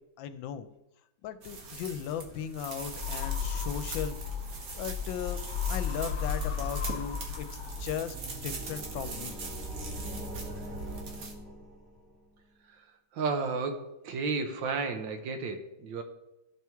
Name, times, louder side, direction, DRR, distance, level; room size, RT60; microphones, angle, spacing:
voice 1, 0.2-0.7 1.2-4.2 4.7-5.4 5.7-8.2 8.4-9.4, left 9 dB, 85° left, 11 dB, 1.3 m, -37 dB
sound 1, 1.4-11.3, right 5 dB, 55° right, 1.5 m, -41 dB
sound 2, 2.8-8.1, left 7 dB, 65° left, 0.7 m, -34 dB
sound 3, 7.4-12.1, left 1 dB, ahead, 0.6 m, -42 dB
voice 2, 13.1-16.0, right 4 dB, 80° right, 6 dB, 1.6 m, -32 dB
13.0 x 4.5 x 3.5 m, 0.91 s
omnidirectional pair, 2.1 m